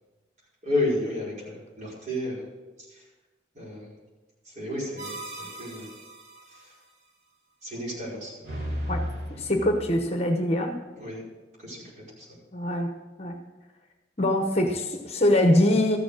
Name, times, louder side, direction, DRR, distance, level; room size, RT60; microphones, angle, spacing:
voice 1, 0.6-2.4 2.8-3.0 3.5-3.9 4.4-5.9 6.5-6.7 7.6-8.4 10.9-11.2 11.6-12.3, left 1 dB, 45° right, -6 dB, 5.1 m, -32 dB
sound 1, 5.0-6.6 8.4-10.0, equal, 65° right, 2.8 m, -35 dB
voice 2, 8.9-10.8 12.5-13.4 14.2-16.0, left 1 dB, 35° left, 5 dB, 1.0 m, -24 dB
13.5 x 7.1 x 6.6 m, 1.2 s
head